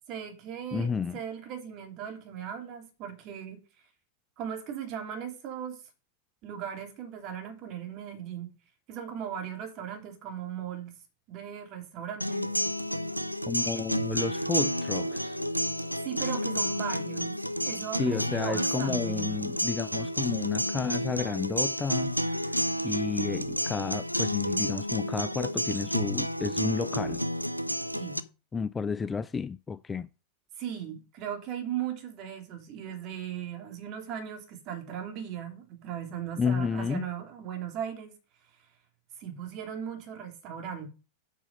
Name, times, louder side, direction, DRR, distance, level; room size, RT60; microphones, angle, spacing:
voice 1, 0.1-3.6 4.4-5.8 6.4-8.5 8.9-11.0 11.3-12.5 13.7-13.9 16.0-19.4 27.9-28.2 30.6-38.1 39.2-40.9, right 9 dB, 40° right, 3.1 m, -38 dB
voice 2, 0.7-1.2 13.5-15.4 18.0-22.6 22.8-27.2 28.5-30.1 36.4-37.0, left 5 dB, 15° left, 0.4 m, -31 dB
sound 1, 12.2-28.2, equal, 90° right, 0.5 m, -30 dB
8.1 x 6.0 x 5.4 m
figure-of-eight pair, 90°, 0 cm